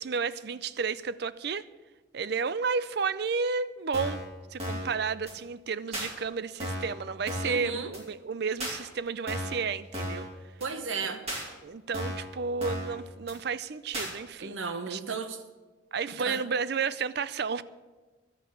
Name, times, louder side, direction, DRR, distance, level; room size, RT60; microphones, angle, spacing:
voice 1, 0.0-1.6 2.1-4.2 4.5-10.3 11.0-11.2 11.6-14.6 14.9-15.0 15.9-17.6, right 5 dB, 55° right, 17 dB, 0.5 m, -32 dB
sound 1, 3.9-4.3 4.6-4.9 5.3-5.4 5.9-6.1 6.6-6.9 7.3-7.6 7.9-8.0 8.6-8.8 9.3-9.6 9.9-10.3 10.6-10.7 11.3-11.4 11.9-12.3 12.6-12.9 13.3-13.4 13.9-14.1, equal, 30° right, 3.2 m, -34 dB
voice 2, 7.4-7.9 10.6-11.2 14.4-15.4 16.1-16.4, right 4 dB, 85° right, 8 dB, 1.3 m, -34 dB
12.0 x 8.6 x 8.3 m, 1.3 s
head